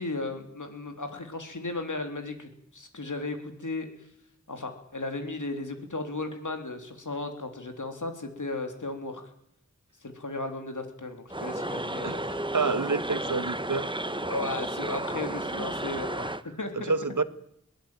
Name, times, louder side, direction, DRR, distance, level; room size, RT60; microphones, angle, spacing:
voice 1, 0.0-3.9 4.5-9.3 10.0-12.2 14.2-16.9, left 2 dB, 90° left, 6 dB, 3.4 m, -35 dB
sound 1, 11.3-16.4, right 1 dB, 15° right, 1.2 m, -33 dB
voice 2, 12.0-13.9 16.9-17.2, right 4 dB, 90° right, 13 dB, 1.4 m, -28 dB
22.0 x 18.0 x 9.1 m, 0.72 s
wide cardioid pair, 40°, 30 cm